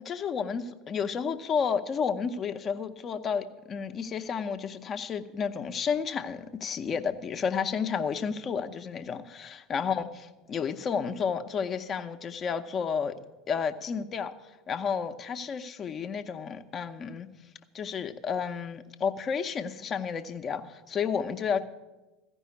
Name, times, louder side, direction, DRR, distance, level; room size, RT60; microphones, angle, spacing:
voice 1, 0.0-13.1 13.5-14.3 14.7-17.3 17.7-21.6, left 6 dB, 35° left, 9 dB, 0.7 m, -31 dB
14.5 x 5.4 x 9.5 m, 1.1 s
figure-of-eight pair, 70°, 0 cm